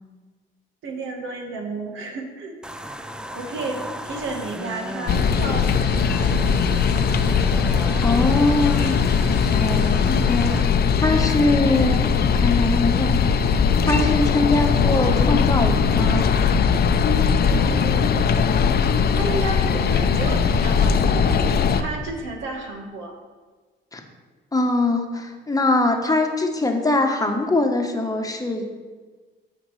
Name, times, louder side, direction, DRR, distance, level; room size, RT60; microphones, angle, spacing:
voice 1, 0.8-2.6 3.3-3.8 4.0-6.8 17.4-18.2 19.1-23.1, right 3 dB, 85° right, 2 dB, 1.4 m, -32 dB
sound 1, 2.6-10.6, equal, 5° right, 0.4 m, -34 dB
sound 2, 5.1-21.8, left 6 dB, 50° left, 0.6 m, -20 dB
voice 2, 8.0-10.7 11.0-13.4 13.9-16.3 23.9-24.0 24.5-28.6, left 2 dB, 20° left, 3 dB, 1.0 m, -22 dB
13.0 x 5.1 x 3.2 m, 1.4 s
cardioid pair, 90°, 20 cm